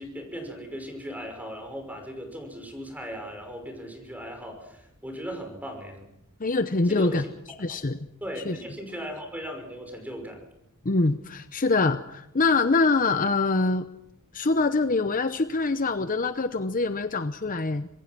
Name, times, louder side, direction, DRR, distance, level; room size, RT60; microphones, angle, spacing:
voice 1, 0.0-6.1 6.8-7.8 8.2-10.4, equal, 5° right, 4 dB, 5.8 m, -38 dB
voice 2, 6.4-7.2 7.6-8.0 8.5-8.6 10.8-13.9 14.3-17.9, left 3 dB, 40° left, 10 dB, 0.8 m, -24 dB
26.0 x 21.0 x 6.1 m, 0.81 s
head